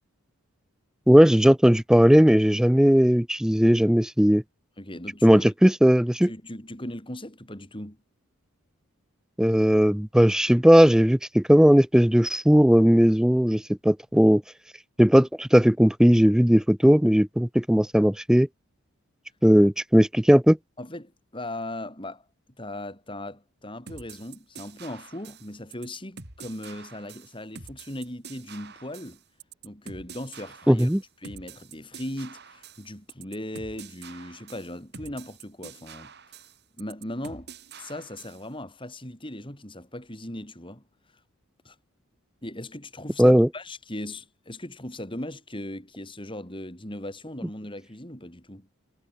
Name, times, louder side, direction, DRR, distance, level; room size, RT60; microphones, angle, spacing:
voice 1, 1.1-4.4 5.2-6.3 9.4-14.4 15.0-18.5 19.4-20.6 30.7-31.0 43.2-43.5, equal, 5° right, 0.4 m, -18 dB
voice 2, 4.8-5.5 6.3-8.0 20.8-22.3 22.6-29.2 29.6-30.9 31.2-36.4 36.8-37.5 37.8-40.8 41.6-41.8 42.4-48.7, left 1 dB, 25° left, 5.3 m, -38 dB
sound 1, 23.9-38.5, right 5 dB, 50° right, 4.8 m, -46 dB
head